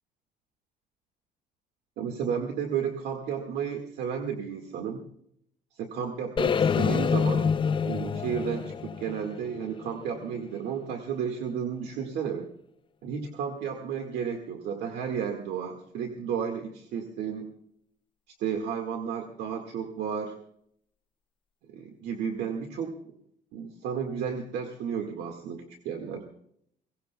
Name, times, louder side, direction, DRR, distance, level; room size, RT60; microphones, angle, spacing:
voice 1, 2.0-5.0 5.7-7.5 7.8-12.5 13.0-17.5 18.4-20.4 21.7-23.1 23.5-26.3, right 7 dB, 75° right, 4 dB, 1.8 m, -33 dB
sound 1, 6.4-10.4, left 6 dB, 30° left, 0.6 m, -27 dB
22.5 x 18.0 x 2.3 m, 0.69 s
cardioid pair, 110°, 17 cm